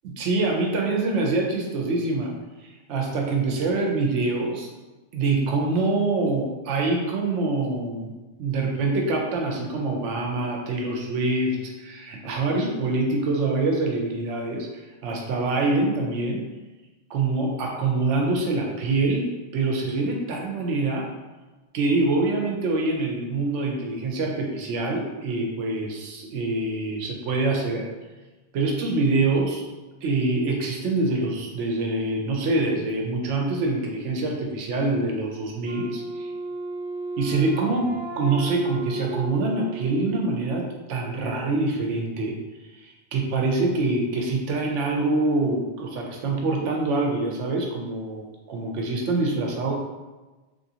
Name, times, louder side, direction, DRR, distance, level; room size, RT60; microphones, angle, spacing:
voice 1, 0.0-2.3 2.6-4.7 5.1-8.1 8.4-14.7 15.0-16.4 17.1-21.1 21.7-27.8 28.5-29.7 30.0-36.3 37.2-42.4 42.8-49.7, right 3 dB, 85° right, 0 dB, 1.0 m, -25 dB
Wind instrument woodwind instrument, 35.6-40.6, right 2 dB, 10° right, 1.4 m, -34 dB
3.3 x 2.5 x 2.7 m, 1.2 s
omnidirectional pair, 1.2 m